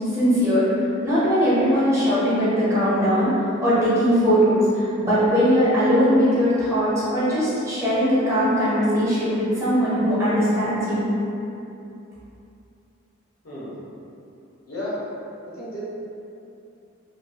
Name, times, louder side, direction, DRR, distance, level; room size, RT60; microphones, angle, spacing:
voice 1, 0.1-0.6 1.0-11.0, equal, 15° right, -11 dB, 0.7 m, -20 dB
voice 2, 13.4-13.8 14.7-14.9 15.5-15.8, left 1 dB, 85° left, -9 dB, 1.1 m, -33 dB
2.9 x 2.4 x 2.7 m, 2.7 s
head